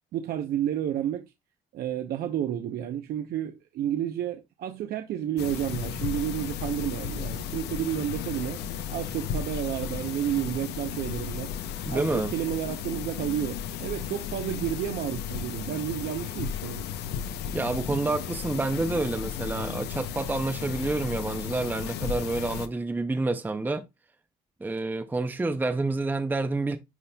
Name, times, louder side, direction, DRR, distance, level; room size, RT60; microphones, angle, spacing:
voice 1, 0.1-1.2 1.7-8.6 8.9-11.5 11.9-16.9, right 11 dB, 65° right, 0.7 m, -31 dB
sound 1, 5.4-22.7, left 8 dB, 80° left, 0.7 m, -34 dB
voice 2, 11.9-12.3 17.5-23.8 24.6-26.8, right 2 dB, 10° right, 0.6 m, -28 dB
10.5 x 4.2 x 2.2 m
cardioid pair, 110°, 17 cm